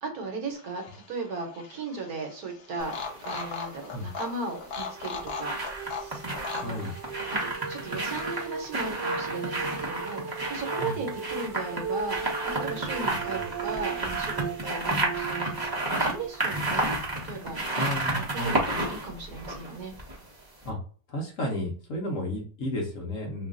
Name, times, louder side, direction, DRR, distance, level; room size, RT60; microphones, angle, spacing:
voice 1, 0.0-3.0 3.2-6.2 6.6-6.8 7.4-16.9 17.2-17.6 18.3-19.9, right 3 dB, 65° right, 2 dB, 1.3 m, -36 dB
sound 1, 0.5-8.7, left 5 dB, 75° left, 0.5 m, -40 dB
sound 2, 2.8-3.5 4.8-20.3 20.6-20.7, right 2 dB, 20° right, 0.6 m, -31 dB
sound 3, 4.6-17.5, right 6 dB, 85° right, 1.2 m, -38 dB
voice 2, 6.5-6.9 10.8-11.0 13.0-13.1 17.8-18.6 20.6-20.8 21.1-23.5, left 1 dB, 55° left, -1 dB, 1.1 m, -33 dB
3.1 x 2.4 x 3.7 m, 0.42 s
omnidirectional pair, 1.9 m